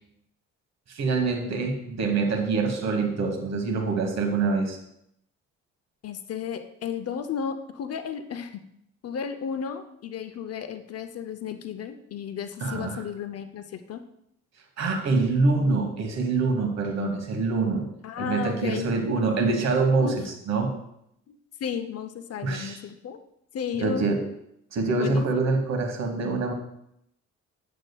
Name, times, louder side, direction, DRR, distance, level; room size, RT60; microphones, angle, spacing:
voice 1, 0.9-4.8 12.6-13.0 14.8-17.9 18.2-20.8 22.4-22.8 23.8-24.2 24.7-26.5, right 3 dB, 60° right, 4 dB, 1.4 m, -25 dB
voice 2, 6.0-8.6 9.0-14.0 18.0-18.9 20.0-20.2 21.3-23.2 23.5-24.1 25.0-25.2, left 7 dB, 55° left, 9 dB, 0.7 m, -33 dB
7.9 x 7.4 x 2.3 m, 0.76 s
cardioid pair, 90°, 30 cm